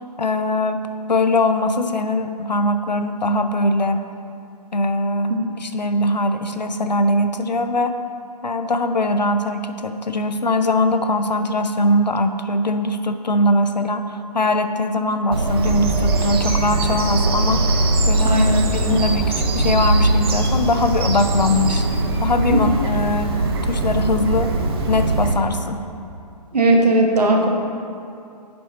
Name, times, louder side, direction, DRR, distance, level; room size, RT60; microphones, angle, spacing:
voice 1, 0.2-0.8 1.1-4.0 4.7-5.3 5.6-7.9 8.4-17.6 18.1-18.4 18.7-21.8 22.2-23.4 23.7-24.5 24.9-25.8, left 1 dB, 85° left, 8 dB, 0.6 m, -21 dB
Bird vocalization bird call bird song, 15.3-25.3, right 2 dB, 35° right, 0.8 m, -20 dB
voice 2, 18.2-18.6 22.5-22.6 26.5-27.5, right 1 dB, 70° right, 1 dB, 1.2 m, -17 dB
7.7 x 5.4 x 4.2 m, 2.5 s
figure-of-eight pair, 130°, 21 cm